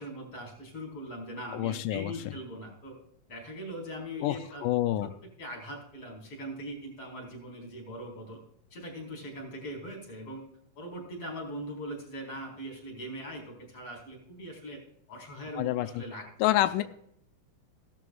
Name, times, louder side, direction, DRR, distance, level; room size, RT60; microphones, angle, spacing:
voice 1, 0.0-2.9 3.3-4.6 5.0-5.1 5.4-8.4 8.7-10.4 10.7-14.8 15.1-16.3 16.6-16.8, equal, 35° left, 0 dB, 4.8 m, -41 dB
voice 2, 1.5-2.1 4.2-5.1 15.6-16.0 16.4-16.8, left 15 dB, 85° left, 11 dB, 1.9 m, -28 dB
15.5 x 12.5 x 2.4 m, 0.69 s
omnidirectional pair, 4.3 m